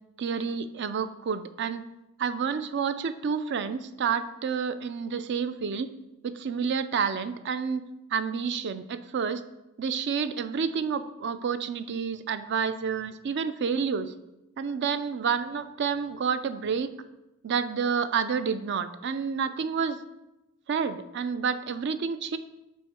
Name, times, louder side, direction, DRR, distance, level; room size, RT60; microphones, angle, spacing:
voice 1, 0.2-1.8 2.2-5.9 6.2-7.8 8.1-9.4 9.8-14.1 14.6-16.9 17.4-20.0 20.7-22.4, right 6 dB, 50° right, 12 dB, 0.4 m, -29 dB
6.2 x 4.6 x 4.3 m, 0.95 s
head